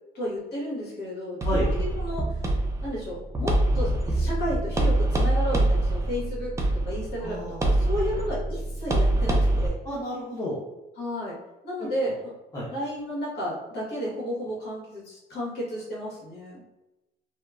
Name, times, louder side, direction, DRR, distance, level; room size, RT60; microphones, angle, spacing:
voice 1, 0.1-2.2 2.8-6.5 6.9-9.8 11.0-11.4 11.6-12.3 12.6-16.6, equal, 75° left, -5 dB, 1.3 m, -32 dB
sound 1, 1.4-9.7, right 1 dB, 15° right, 0.4 m, -24 dB
voice 2, 7.2-7.7 9.8-10.6 12.1-12.2 12.5-12.7, equal, 25° left, -9 dB, 0.9 m, -31 dB
2.8 x 2.2 x 2.3 m, 0.98 s
cardioid pair, 110°, 17 cm